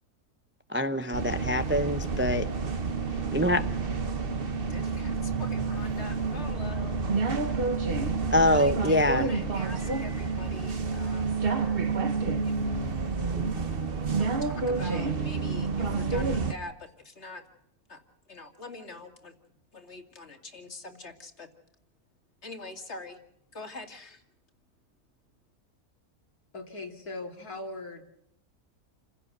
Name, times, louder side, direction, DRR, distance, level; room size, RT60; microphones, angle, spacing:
voice 1, 0.7-2.5 3.3-3.6 8.3-9.3, left 1 dB, 10° right, 0.6 m, -24 dB
sound 1, 1.1-16.5, right 4 dB, 40° right, 1.4 m, -29 dB
voice 2, 4.7-7.0 7.5-7.6 8.5-11.9 12.4-12.6 14.2-17.4 17.9-18.0 18.3-19.3 19.7-21.5 22.4-23.2 23.5-24.2, left 3 dB, 45° left, 2.8 m, -44 dB
voice 3, 26.5-28.0, left 2 dB, 70° left, 3.4 m, -39 dB
29.5 x 16.5 x 6.8 m
omnidirectional pair, 1.6 m